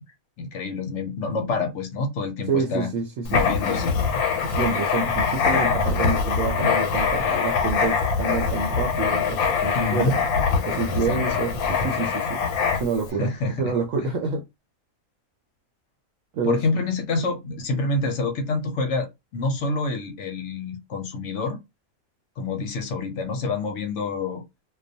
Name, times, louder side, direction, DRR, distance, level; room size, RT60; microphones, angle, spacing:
voice 1, 0.4-2.9 3.3-4.0 9.8-10.2 10.9-11.2 13.2-13.7 16.4-21.6 22.4-24.4, left 3 dB, 65° left, 0.8 m, -27 dB
voice 2, 2.5-3.4 3.7-3.8 4.5-10.1 10.6-12.4 12.7-13.3 13.6-14.4 16.3-16.6, right 5 dB, 70° right, 0.9 m, -28 dB
Writing, 3.2-13.1, left 5 dB, 90° left, 1.1 m, -23 dB
2.3 x 2.2 x 2.6 m
omnidirectional pair, 1.5 m